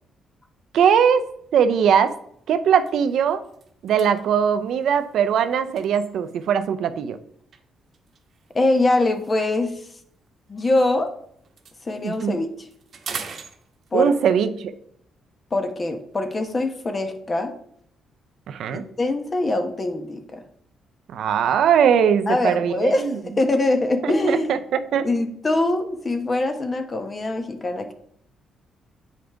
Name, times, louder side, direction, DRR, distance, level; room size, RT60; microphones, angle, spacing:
voice 1, 0.7-1.3 1.5-2.1 2.5-3.4 3.8-7.2 12.0-12.4 13.9-14.7 18.5-18.8 21.1-23.2 24.0-25.1, right 8 dB, 75° right, 11 dB, 0.5 m, -20 dB
sound 1, 2.2-2.4 2.7-6.7 7.5-11.1 11.4-14.2, right 6 dB, 55° right, 1.0 m, -42 dB
voice 2, 8.5-9.7 10.5-11.1 11.8-12.7 13.9-14.1 15.5-17.6 18.7-20.4 22.3-24.5 25.0-27.9, left 2 dB, 30° left, 7 dB, 1.0 m, -23 dB
7.5 x 5.2 x 3.4 m, 0.67 s
cardioid pair, 90°, 0 cm